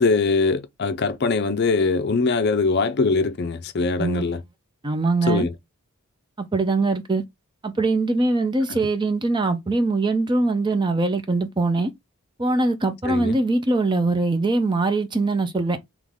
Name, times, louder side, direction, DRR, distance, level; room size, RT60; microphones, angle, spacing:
voice 1, 0.0-4.4 5.3-5.5 8.7-8.8 13.0-13.4, left 4 dB, 45° left, 0.4 m, -22 dB
voice 2, 4.8-5.5 6.4-7.2 7.6-11.9 12.4-15.8, right 3 dB, 20° right, 0.4 m, -22 dB
3.6 x 3.0 x 3.5 m
head